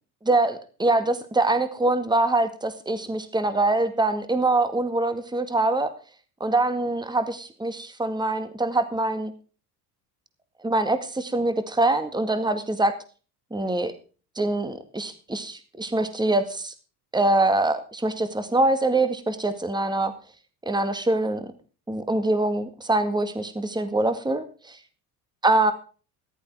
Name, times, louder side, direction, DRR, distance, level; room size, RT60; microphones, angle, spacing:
voice 1, 0.2-5.9 6.4-9.3 10.6-12.9 13.5-13.9 14.4-16.7 17.1-20.1 20.7-21.5 21.9-24.8 25.4-25.7, right 2 dB, 10° right, 11 dB, 2.0 m, -24 dB
14.0 x 11.5 x 4.7 m, 0.37 s
hypercardioid pair, 60°, 48 cm